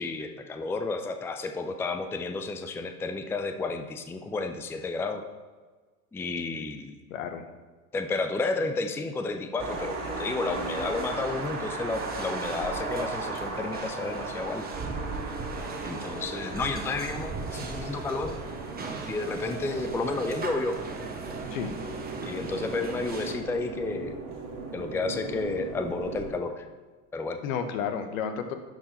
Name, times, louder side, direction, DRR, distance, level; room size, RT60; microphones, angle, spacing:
voice 1, 0.0-5.2 6.1-7.0 7.9-14.6 15.8-18.4 19.1-20.8 22.2-24.2 24.7-26.7 27.1-27.4, left 3 dB, 5° left, 6 dB, 0.4 m, -31 dB
voice 2, 7.1-7.5 21.5-21.8 27.4-28.5, left 7 dB, 70° left, 8 dB, 1.1 m, -31 dB
sound 1, 9.6-26.3, right 3 dB, 50° right, 2.4 m, -37 dB
sound 2, 10.5-23.4, right 4 dB, 20° right, 1.1 m, -39 dB
11.0 x 4.5 x 4.3 m, 1.4 s
hypercardioid pair, 85°, 43 cm